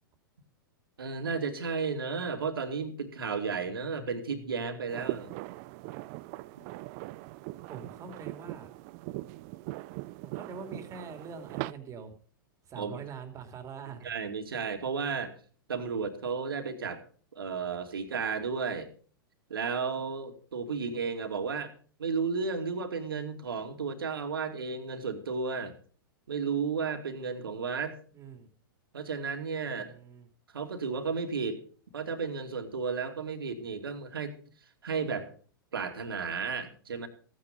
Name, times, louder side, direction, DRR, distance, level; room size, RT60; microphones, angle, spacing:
voice 1, 1.0-5.3 12.8-13.0 14.0-15.3 15.7-17.0 17.3-18.9 19.5-21.7 22.0-25.7 26.3-27.9 28.9-29.9 30.5-31.6 31.9-34.3 34.8-35.3 35.7-37.1, right 5 dB, 80° right, 5 dB, 2.6 m, -33 dB
sound 1, 4.9-11.7, right 19 dB, 45° right, 0.6 m, -40 dB
voice 2, 7.7-8.7 10.2-12.1 12.7-14.1 28.1-28.5 29.6-30.3, right 5 dB, 25° right, 7 dB, 2.7 m, -44 dB
15.5 x 9.6 x 5.3 m, 0.43 s
hypercardioid pair, 115°, 12 cm